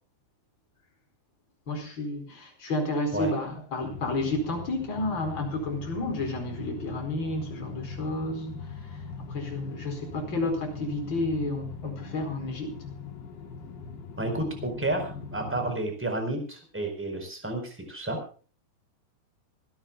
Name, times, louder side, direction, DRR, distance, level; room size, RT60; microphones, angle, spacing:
voice 1, 1.7-8.6 9.2-12.8, left 2 dB, 25° left, 4.8 m, -31 dB
sound 1, 3.8-15.7, left 5 dB, 75° left, 4.6 m, -40 dB
voice 2, 14.2-18.2, right 2 dB, 5° right, 3.8 m, -31 dB
26.0 x 13.5 x 2.3 m
omnidirectional pair, 5.0 m